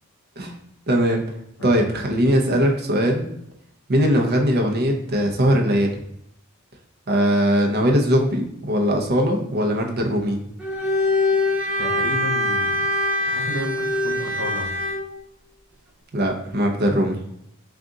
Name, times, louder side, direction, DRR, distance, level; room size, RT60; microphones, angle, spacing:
voice 1, 0.9-1.2 1.6-3.3 3.9-5.9 7.1-10.4 16.1-17.2, equal, 45° right, 1 dB, 0.6 m, -20 dB
Bowed string instrument, 10.6-15.1, left 1 dB, 5° right, 0.4 m, -23 dB
voice 2, 11.8-12.8 13.3-13.8 14.0-14.7, left 1 dB, 75° left, 2 dB, 0.8 m, -31 dB
3.8 x 2.4 x 3.6 m, 0.77 s
head